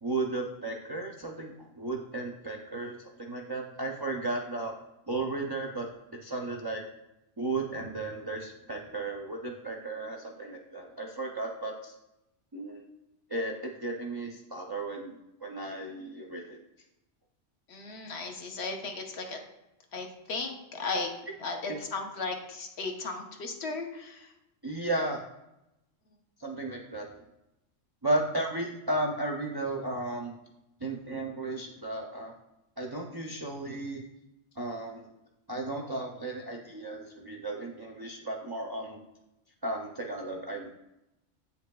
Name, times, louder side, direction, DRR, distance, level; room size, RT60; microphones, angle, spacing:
voice 1, 0.0-4.7 5.1-5.9 6.2-6.8 7.4-11.9 12.5-12.9 13.3-16.6 21.7-21.8 24.6-25.2 26.4-27.2 28.0-30.3 30.8-32.3 32.8-34.0 34.6-35.0 35.5-39.0 39.6-40.7, right 2 dB, 40° right, 0 dB, 0.3 m, -34 dB
voice 2, 17.7-19.4 19.9-21.1 21.4-24.3, left 3 dB, 65° left, 3 dB, 1.1 m, -36 dB
8.3 x 5.6 x 2.3 m, 0.91 s
omnidirectional pair, 1.3 m